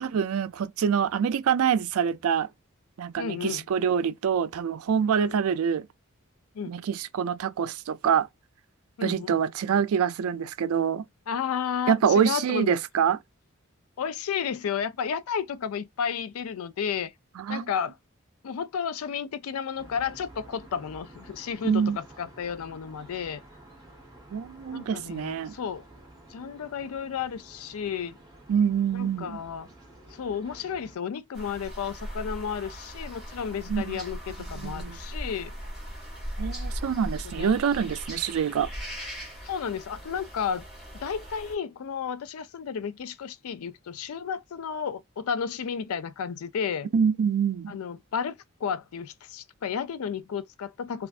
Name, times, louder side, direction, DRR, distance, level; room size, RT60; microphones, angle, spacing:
voice 1, 0.0-2.5 3.0-5.9 6.6-8.3 9.0-11.0 11.9-13.2 17.4-17.7 21.6-22.0 24.3-25.5 28.5-29.4 33.7-34.0 34.5-35.0 36.4-38.7 46.9-47.8, right 7 dB, 85° right, 0.4 m, -25 dB
voice 2, 3.2-3.7 5.2-5.3 6.6-6.7 9.0-9.4 11.3-12.7 14.0-17.1 17.5-17.9 18.4-23.4 24.7-25.8 26.3-28.2 28.9-29.7 30.2-35.5 37.4-37.5 39.4-40.6 40.9-46.9 47.7-48.3 48.6-51.1, left 7 dB, 85° left, 0.4 m, -32 dB
sound 1, 19.8-31.0, right 1 dB, 15° right, 0.9 m, -51 dB
sound 2, 31.3-41.6, equal, ahead, 1.6 m, -38 dB
3.2 x 2.4 x 2.4 m
head